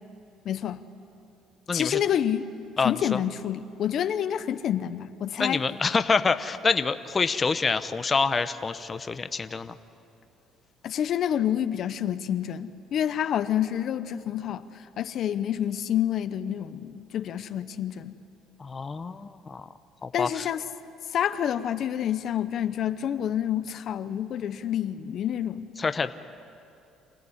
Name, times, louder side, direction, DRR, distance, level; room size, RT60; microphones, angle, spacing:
voice 1, 0.4-0.8 1.7-2.5 2.8-5.6 10.8-18.2 20.1-20.6 21.1-25.7, left 10 dB, 55° left, 12 dB, 0.8 m, -28 dB
voice 2, 1.7-2.0 2.8-3.2 5.4-9.8 18.6-19.7 20.0-20.5 25.8-26.1, left 4 dB, 25° left, 11 dB, 0.8 m, -27 dB
26.5 x 17.0 x 9.9 m, 2.6 s
cardioid pair, 105°, 0 cm